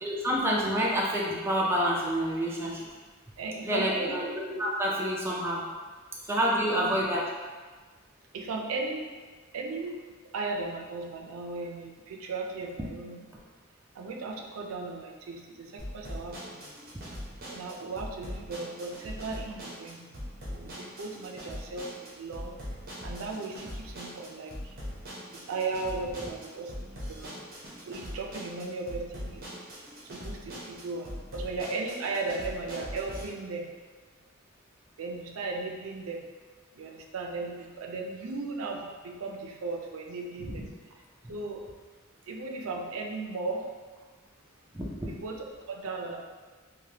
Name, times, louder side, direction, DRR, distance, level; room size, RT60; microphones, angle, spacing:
voice 1, 0.0-2.9 3.6-4.3 4.6-5.6 6.3-7.2 44.7-45.1, equal, 10° right, -4 dB, 0.4 m, -28 dB
voice 2, 3.4-4.3 6.7-6.9 8.3-9.1 9.5-10.0 10.3-13.3 13.9-16.7 17.5-20.2 20.5-22.6 23.0-24.8 25.3-27.4 27.9-29.6 30.0-33.7 35.0-36.3 36.8-40.7 41.3-41.6 42.3-43.7 45.0-46.2, right 3 dB, 85° right, 2 dB, 0.4 m, -36 dB
sound 1, 15.8-33.2, equal, 45° right, 0.7 m, -41 dB
3.2 x 2.1 x 2.8 m, 1.4 s
head